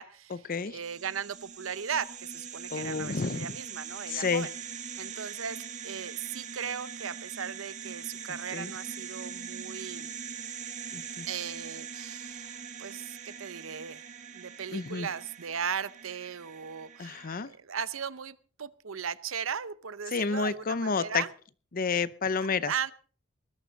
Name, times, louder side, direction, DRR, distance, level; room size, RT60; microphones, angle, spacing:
voice 1, 0.0-4.5 5.0-5.6 5.8-10.1 11.3-14.1 14.3-21.3 22.4-22.9, right 7 dB, 85° right, 16 dB, 0.8 m, -37 dB
sound 1, 0.8-17.4, right 7 dB, 40° right, 1.3 m, -42 dB
voice 2, 2.7-3.6 4.1-4.5 8.5-8.7 10.9-11.3 14.7-15.1 17.0-17.5 20.1-21.2 21.7-22.7, left 5 dB, 45° left, 17 dB, 0.7 m, -30 dB
20.0 x 13.0 x 4.0 m, 0.41 s
head